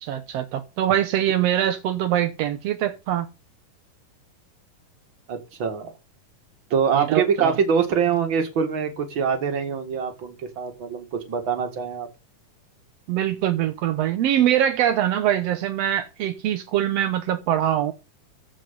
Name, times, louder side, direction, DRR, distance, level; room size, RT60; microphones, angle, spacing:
voice 1, 0.0-3.3 6.9-7.5 13.1-17.9, right 11 dB, 70° right, 1.5 m, -23 dB
voice 2, 5.3-5.9 6.7-12.1, right 6 dB, 40° right, 2.4 m, -24 dB
14.5 x 5.3 x 5.3 m
omnidirectional pair, 3.8 m